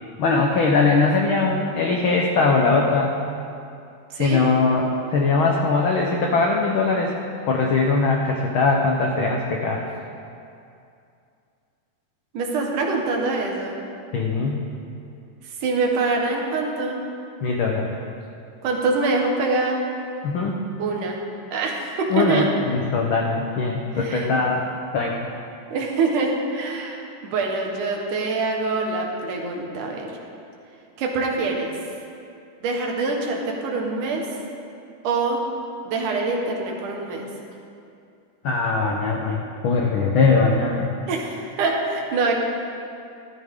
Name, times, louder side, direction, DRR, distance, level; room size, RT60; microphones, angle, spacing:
voice 1, 0.2-3.2 4.2-7.2 7.5-9.8 14.1-14.6 17.4-17.9 20.2-20.6 22.1-25.3 38.4-40.9, left 3 dB, 75° left, 0 dB, 1.2 m, -21 dB
voice 2, 12.3-13.8 15.4-17.0 18.6-19.8 20.8-21.2 21.5-22.5 23.9-24.3 25.7-30.1 31.0-31.8 32.6-34.3 35.0-35.4 35.8-37.3 41.1-42.3, right 3 dB, 85° right, 0 dB, 2.9 m, -24 dB
14.5 x 13.0 x 3.7 m, 2.5 s
omnidirectional pair, 3.5 m